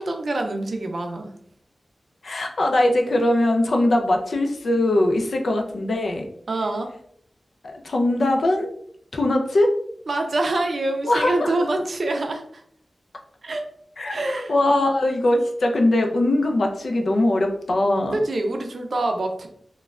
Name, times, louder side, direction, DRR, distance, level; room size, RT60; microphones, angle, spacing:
voice 1, 0.0-1.3 6.5-6.9 10.1-12.6 13.4-13.6 14.1-14.9 18.1-19.5, right 2 dB, 65° right, 4 dB, 0.4 m, -26 dB
voice 2, 2.2-6.3 7.6-8.7 9.1-9.7 11.0-11.6 14.0-14.1 14.5-18.1, left 1 dB, 70° left, 3 dB, 0.4 m, -21 dB
3.1 x 2.1 x 2.3 m, 0.64 s
wide cardioid pair, 95°, 0 cm